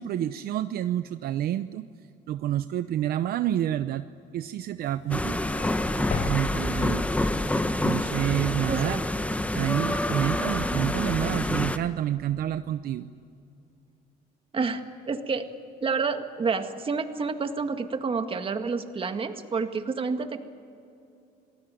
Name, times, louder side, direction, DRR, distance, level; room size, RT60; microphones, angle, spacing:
voice 1, 0.0-1.9 2.3-4.0 4.3-5.4 6.2-7.3 7.8-9.0 9.5-13.1, right 11 dB, 65° right, 11 dB, 0.7 m, -28 dB
sound 1, 4.8-7.5, left 3 dB, 50° left, 4.1 m, -36 dB
sound 2, 5.1-11.8, left 1 dB, 10° left, 1.2 m, -27 dB
voice 2, 14.5-15.5 15.8-20.4, right 4 dB, 30° right, 7 dB, 1.9 m, -29 dB
27.0 x 19.5 x 9.2 m, 2.6 s
cardioid pair, 110°, 17 cm